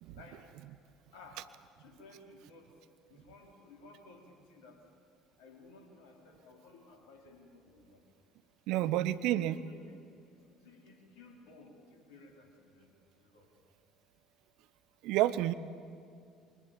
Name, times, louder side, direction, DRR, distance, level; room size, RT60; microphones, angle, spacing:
voice 1, 1.1-1.4 1.8-2.7 3.1-4.8 5.4-8.0 8.7-9.9 10.2-10.3 10.6-12.9 13.3-13.5, left 3 dB, 65° left, 2 dB, 4.1 m, -55 dB
voice 2, 8.7-9.6 15.0-15.5, right 14 dB, 60° right, 15 dB, 0.8 m, -29 dB
25.0 x 23.5 x 7.4 m, 2.4 s
figure-of-eight pair, 55°, 0 cm